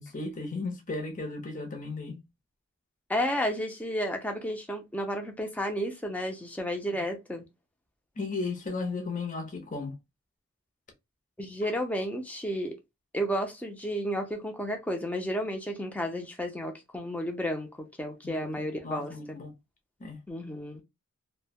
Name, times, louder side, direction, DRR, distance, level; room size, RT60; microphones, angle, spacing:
voice 1, 0.0-2.2 6.9-7.0 8.2-9.9 11.6-11.7 18.2-18.5 18.8-19.5 20.0-20.2, left 3 dB, 35° left, 0.8 m, -35 dB
voice 2, 3.1-7.4 11.4-12.8 13.1-19.1 20.3-20.8, equal, 5° left, 0.5 m, -32 dB
3.1 x 2.2 x 2.3 m
head